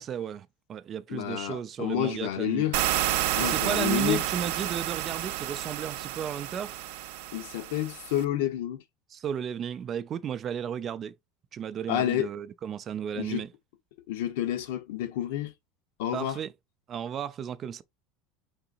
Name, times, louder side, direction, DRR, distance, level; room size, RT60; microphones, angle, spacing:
voice 1, 0.0-2.7 3.4-6.9 9.1-11.1 11.5-13.5 16.1-16.5 16.9-17.8, right 8 dB, 25° right, 0.3 m, -34 dB
voice 2, 1.1-2.8 3.4-4.2 7.3-8.8 11.9-12.3 13.2-13.5 14.1-15.5 16.0-16.4, left 12 dB, 85° left, 0.8 m, -29 dB
sound 1, 2.7-8.2, right 13 dB, 70° right, 0.6 m, -30 dB
4.8 x 3.8 x 2.5 m
cardioid pair, 175°, 0 cm